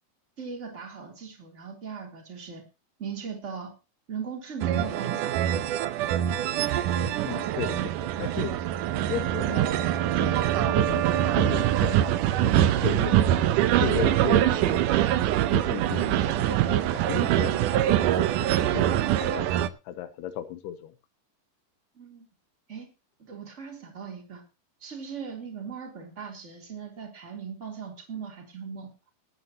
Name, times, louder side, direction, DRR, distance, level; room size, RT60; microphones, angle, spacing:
voice 1, 0.4-2.6 3.0-3.7 4.1-5.4 21.9-22.3 22.7-22.9 23.2-24.4 24.8-28.9, right 6 dB, 20° right, 2 dB, 3.1 m, -39 dB
sound 1, 4.6-19.7, right 12 dB, 75° right, 2.0 m, -24 dB
voice 2, 7.2-7.9 8.2-8.5 9.1-13.2 13.6-15.1 15.5-19.5 19.9-20.9, left 10 dB, 85° left, 10 dB, 3.0 m, -35 dB
21.0 x 9.8 x 2.9 m, 0.28 s
omnidirectional pair, 4.5 m